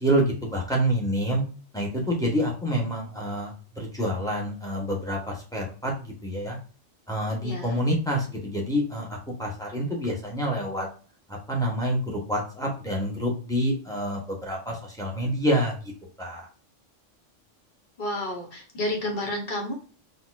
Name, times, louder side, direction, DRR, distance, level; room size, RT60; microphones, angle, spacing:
voice 1, 0.0-1.4 1.7-6.6 7.1-10.9 11.3-15.8 16.2-16.5, equal, 5° left, -2 dB, 1.2 m, -27 dB
voice 2, 7.4-7.8 18.0-19.8, left 1 dB, 40° left, 0 dB, 1.3 m, -30 dB
4.1 x 3.0 x 2.4 m, 0.39 s
omnidirectional pair, 1.3 m